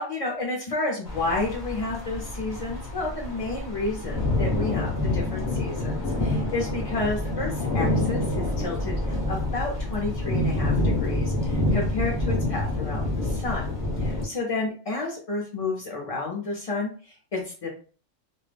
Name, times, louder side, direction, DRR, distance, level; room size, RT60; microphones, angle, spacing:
voice 1, 0.0-13.7 14.0-17.7, left 3 dB, 55° left, -2 dB, 0.4 m, -31 dB
sound 1, 1.1-14.3, left 1 dB, 20° left, 0.7 m, -27 dB
2.3 x 2.0 x 3.2 m, 0.39 s
omnidirectional pair, 1.3 m